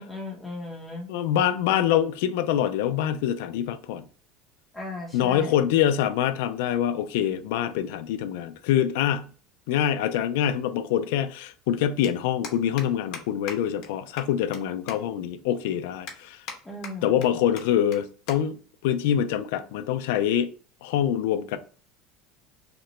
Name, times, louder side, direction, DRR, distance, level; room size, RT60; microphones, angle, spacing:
voice 1, 0.0-1.1 4.7-5.7 16.6-17.4, left 2 dB, 10° left, 0.8 m, -37 dB
voice 2, 1.1-4.1 5.1-9.3 9.7-16.4 17.0-20.5 20.8-21.6, left 10 dB, 80° left, 0.3 m, -25 dB
sound 1, 12.0-12.1 12.4-12.9 13.1-13.2 13.5-13.6 13.8-13.9 14.2-14.6 14.9-15.0 15.4-15.5 16.1-16.6 16.8-17.3 17.6-17.7 17.9-18.0 18.3-18.4 18.7-18.9 19.7-20.0, left 6 dB, 55° left, 0.8 m, -38 dB
2.9 x 2.1 x 4.1 m
cardioid pair, 155°, 0 cm